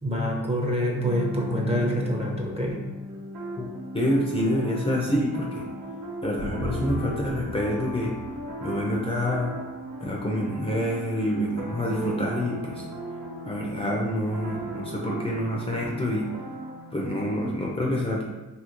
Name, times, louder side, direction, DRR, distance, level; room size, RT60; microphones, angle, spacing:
voice 1, 0.0-2.8, equal, 20° right, -1 dB, 0.6 m, -26 dB
sound 1, 0.8-17.5, right 1 dB, 60° right, 1.0 m, -38 dB
voice 2, 3.9-5.6 6.2-8.1 8.6-9.5 10.0-12.8 13.5-16.3 16.9-18.2, equal, 20° left, -3 dB, 0.4 m, -27 dB
sound 2, 6.4-9.8 10.1-10.2, equal, 85° left, 0.7 m, -37 dB
2.8 x 2.5 x 2.9 m, 1.1 s
cardioid pair, 90°, 30 cm